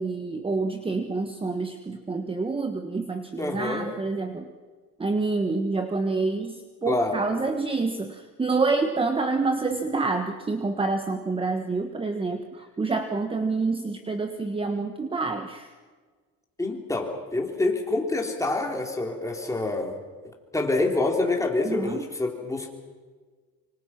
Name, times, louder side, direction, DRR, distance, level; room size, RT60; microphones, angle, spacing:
voice 1, 0.0-4.5 5.0-15.7 21.6-22.1, right 3 dB, 15° right, 6 dB, 1.3 m, -27 dB
voice 2, 3.4-3.9 6.9-7.2 16.6-20.0 20.5-22.7, left 2 dB, 10° left, 2 dB, 3.6 m, -26 dB
25.5 x 25.0 x 6.0 m, 1.5 s
cardioid pair, 130°, 34 cm